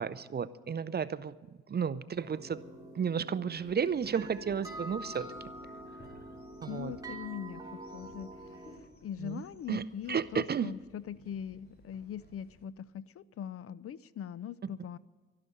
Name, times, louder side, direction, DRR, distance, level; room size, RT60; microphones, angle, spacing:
voice 1, 0.0-1.4 1.7-2.6 2.9-5.3 6.6-7.0 9.2-10.7, right 7 dB, 35° right, 16 dB, 0.6 m, -33 dB
sound 1, 2.2-8.8, right 1 dB, 10° right, 3.2 m, -46 dB
sound 2, 3.5-12.7, left 1 dB, 30° left, 3.1 m, -59 dB
voice 2, 6.7-8.6 9.0-15.0, left 9 dB, 50° left, 19 dB, 0.5 m, -41 dB
12.5 x 12.0 x 8.4 m, 1.4 s
cardioid pair, 90°, 30 cm